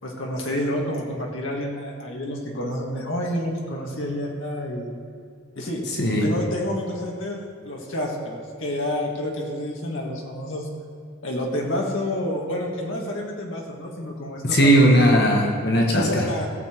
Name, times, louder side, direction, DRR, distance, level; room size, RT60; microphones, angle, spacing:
voice 1, 0.0-4.9 5.6-5.8 6.2-10.7 11.2-15.1 15.9-16.5, left 1 dB, 70° left, -1 dB, 2.0 m, -29 dB
voice 2, 5.9-6.3 14.4-16.3, equal, 50° left, 0 dB, 1.4 m, -18 dB
17.0 x 7.1 x 4.6 m, 2.3 s
head